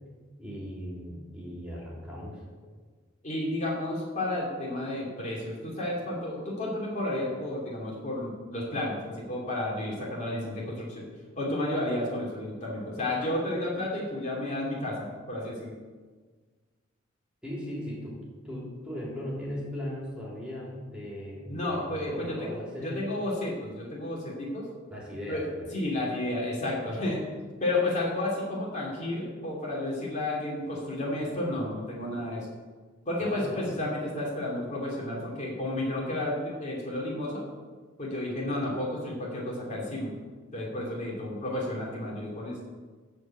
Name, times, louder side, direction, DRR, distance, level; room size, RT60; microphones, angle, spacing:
voice 1, 0.4-2.4 17.4-18.2 18.4-23.1 24.9-25.7 33.2-33.7, equal, 5° right, -6 dB, 3.2 m, -38 dB
voice 2, 3.2-11.0 11.4-15.7 21.5-22.5 22.8-24.7 25.3-27.2 27.6-32.5 33.0-37.5 38.0-40.1 40.5-42.6, left 1 dB, 35° left, -4 dB, 2.9 m, -32 dB
13.5 x 4.7 x 8.0 m, 1.4 s
head